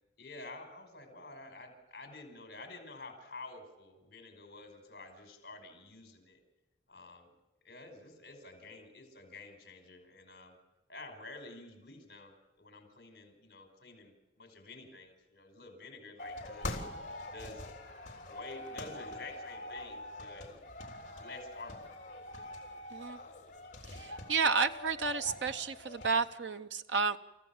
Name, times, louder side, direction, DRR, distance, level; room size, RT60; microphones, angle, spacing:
voice 1, 0.2-6.4 6.9-7.3 7.6-10.6 10.9-16.8 17.3-17.6 18.3-20.6 20.9-21.8, left 2 dB, 55° left, 4 dB, 5.3 m, -50 dB
sound 1, 16.2-26.2, left 1 dB, 40° left, 3.5 m, -44 dB
voice 2, 23.9-27.2, right 5 dB, 80° right, 9 dB, 0.8 m, -31 dB
29.0 x 15.0 x 7.3 m, 1.0 s
head